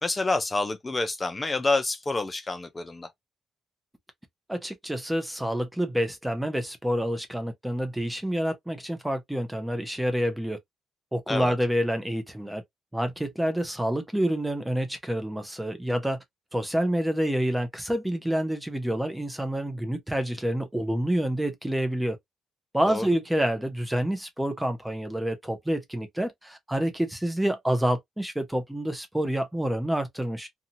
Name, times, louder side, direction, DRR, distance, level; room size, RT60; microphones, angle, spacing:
voice 1, 0.0-3.1 11.3-11.5 22.9-23.1, left 3 dB, 25° left, 0.7 m, -28 dB
voice 2, 4.5-10.6 11.1-12.6 12.9-16.2 16.5-22.2 22.7-30.5, right 1 dB, 5° right, 0.7 m, -28 dB
2.8 x 2.4 x 2.7 m
cardioid pair, 90°, 0 cm